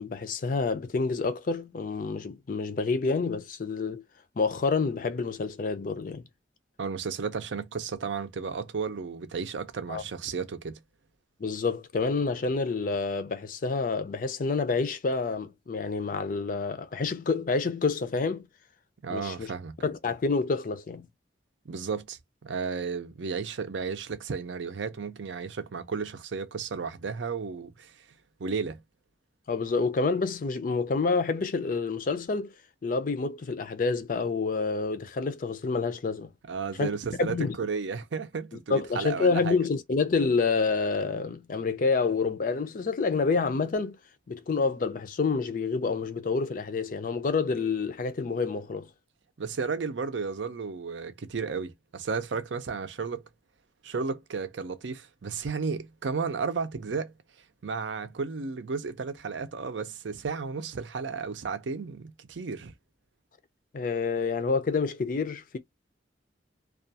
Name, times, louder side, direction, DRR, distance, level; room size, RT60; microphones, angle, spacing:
voice 1, 0.0-4.0 4.4-6.2 9.9-10.0 11.4-18.5 19.1-19.5 19.8-21.1 29.5-32.5 32.8-36.3 36.8-36.9 37.2-37.6 38.7-44.0 44.3-48.9 63.7-65.6, left 4 dB, 45° left, 0.4 m, -28 dB
voice 2, 6.8-10.8 19.0-19.8 21.7-27.9 28.4-28.8 36.5-39.6 49.4-53.2 53.8-57.1 57.6-62.7, right 5 dB, 85° right, 0.5 m, -33 dB
2.4 x 2.3 x 2.6 m
head